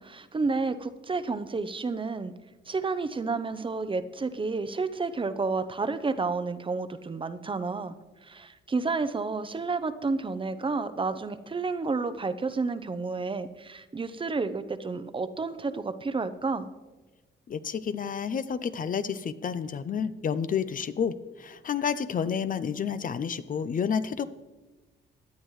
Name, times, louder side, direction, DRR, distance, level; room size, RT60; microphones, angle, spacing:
voice 1, 0.0-2.3 2.7-7.9 8.2-16.7, right 4 dB, 25° right, 11 dB, 0.7 m, -30 dB
voice 2, 17.5-24.3, left 7 dB, 45° left, 13 dB, 0.5 m, -30 dB
17.0 x 10.0 x 3.2 m, 1.2 s
cardioid pair, 85°, 19 cm